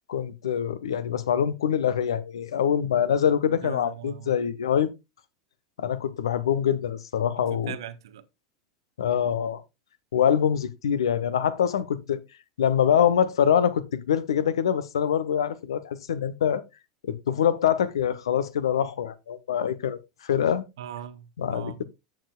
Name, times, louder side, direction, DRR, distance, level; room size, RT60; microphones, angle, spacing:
voice 1, 0.1-4.9 5.8-7.7 9.0-9.6 10.1-12.2 12.6-16.6 17.0-20.0 20.2-20.6 21.4-21.8, left 8 dB, 65° left, 0.8 m, -24 dB
voice 2, 3.6-4.3 7.4-8.2 20.8-21.8, right 10 dB, 60° right, 0.8 m, -40 dB
13.5 x 7.2 x 2.3 m
figure-of-eight pair, 85°, 3 cm